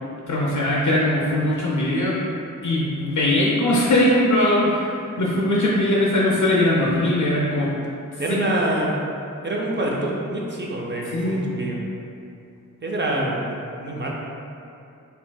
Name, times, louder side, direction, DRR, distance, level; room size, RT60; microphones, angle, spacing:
voice 1, 0.3-2.2 2.6-7.7 8.3-8.4 11.1-11.4, left 1 dB, 65° left, -5 dB, 0.5 m, -20 dB
voice 2, 8.2-8.9 9.4-11.8 12.8-14.1, right 1 dB, 35° right, -2 dB, 0.6 m, -26 dB
3.5 x 2.8 x 2.2 m, 2.6 s
cardioid pair, 45°, 32 cm